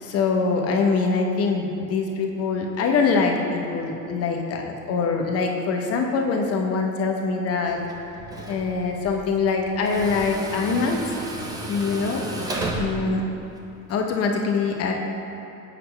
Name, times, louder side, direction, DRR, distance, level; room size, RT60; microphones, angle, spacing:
voice 1, 0.0-7.8 8.5-11.0 11.7-12.2 12.7-13.2 13.9-14.9, left 4 dB, 30° left, 2 dB, 0.7 m, -24 dB
Tools, 7.7-13.9, right 2 dB, 10° right, 0.3 m, -34 dB
7.5 x 5.8 x 2.2 m, 2.9 s
hypercardioid pair, 85°, 47 cm